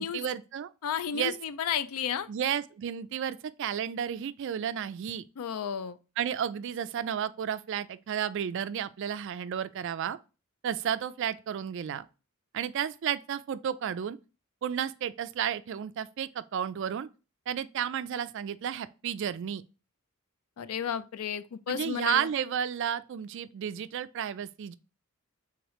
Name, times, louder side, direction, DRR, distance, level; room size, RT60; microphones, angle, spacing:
voice 1, 0.0-0.7 1.1-1.3 2.3-5.2 6.2-10.2 10.6-12.1 12.5-14.2 14.6-17.1 17.5-19.6 21.7-24.7, right 9 dB, 55° right, 0.3 m, -32 dB
voice 2, 0.8-2.3 5.4-6.0 20.6-22.3, left 8 dB, 80° left, 0.4 m, -32 dB
4.8 x 3.5 x 3.0 m
head